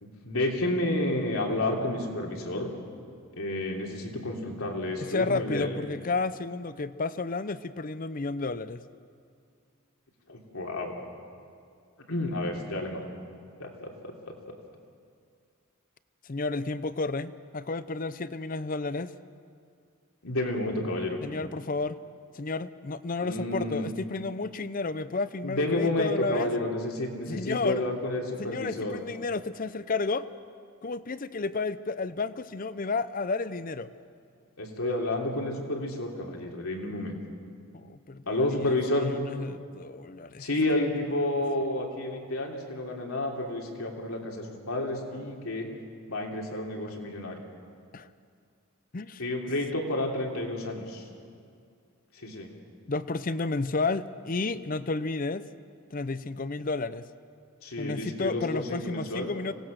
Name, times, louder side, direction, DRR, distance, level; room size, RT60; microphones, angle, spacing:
voice 1, 0.0-2.7 3.4-5.8 10.3-10.9 12.1-13.0 13.6-14.1 20.2-21.2 23.2-23.9 25.4-29.0 34.6-37.2 38.3-39.1 40.4-45.7 46.1-47.4 49.2-51.1 52.1-52.5 57.6-59.3, left 1 dB, 80° left, 0 dB, 3.0 m, -30 dB
voice 2, 5.0-8.8 16.2-19.1 21.2-22.0 22.3-26.5 27.3-27.8 28.4-30.3 30.8-33.9 37.7-38.2 38.5-40.5 47.9-48.1 48.9-49.2 52.9-55.4 55.9-57.0 57.8-59.5, left 3 dB, 40° left, 14 dB, 0.6 m, -32 dB
25.5 x 18.0 x 6.5 m, 2.3 s
head